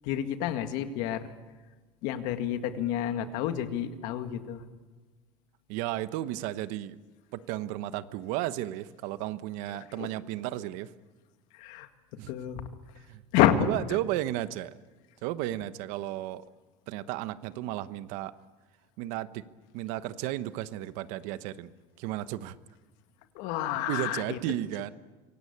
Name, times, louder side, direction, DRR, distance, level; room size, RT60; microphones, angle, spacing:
voice 1, 0.0-1.3 2.0-4.6 10.0-10.1 11.5-11.9 12.3-12.6 13.3-13.7 23.4-24.4, left 11 dB, 75° left, 8 dB, 2.0 m, -29 dB
voice 2, 5.7-7.0 7.3-10.9 12.2-12.3 13.0-13.2 13.6-14.7 15.2-16.4 16.9-18.3 19.0-19.4 19.7-21.7 22.0-22.6 23.9-24.9, right 14 dB, 75° right, 13 dB, 1.1 m, -34 dB
25.5 x 17.5 x 8.7 m, 1.3 s
supercardioid pair, 115°, 13 cm